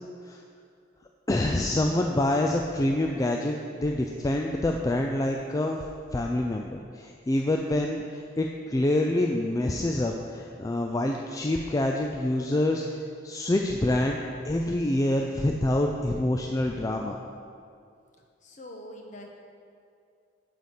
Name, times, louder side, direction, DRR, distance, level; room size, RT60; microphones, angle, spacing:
voice 1, 1.3-5.8 6.1-13.0 13.2-14.2 14.5-17.2, left 1 dB, 20° left, 1 dB, 0.3 m, -26 dB
voice 2, 18.4-19.3, left 1 dB, 40° left, 1 dB, 1.0 m, -43 dB
9.4 x 4.1 x 6.5 m, 2.4 s
head